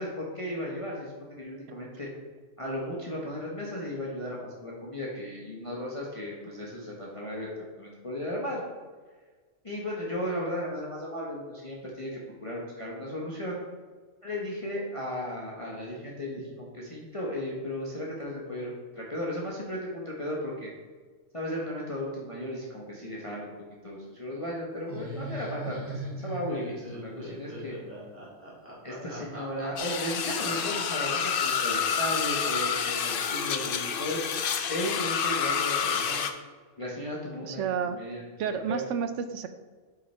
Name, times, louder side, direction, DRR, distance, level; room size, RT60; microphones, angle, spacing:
voice 1, 0.0-2.1 2.6-8.6 9.6-13.6 14.2-20.7 21.3-23.5 23.8-27.8 28.8-34.2 34.7-36.3 36.8-38.8, left 1 dB, 25° left, -4 dB, 1.1 m, -35 dB
Laughter, 24.9-32.7, right 1 dB, 10° right, 1.8 m, -40 dB
sound 1, 29.8-36.3, left 7 dB, 60° left, 0.6 m, -28 dB
voice 2, 37.4-38.0 38.4-39.5, right 7 dB, 70° right, 9 dB, 0.8 m, -30 dB
7.8 x 5.5 x 3.4 m, 1.4 s
omnidirectional pair, 1.4 m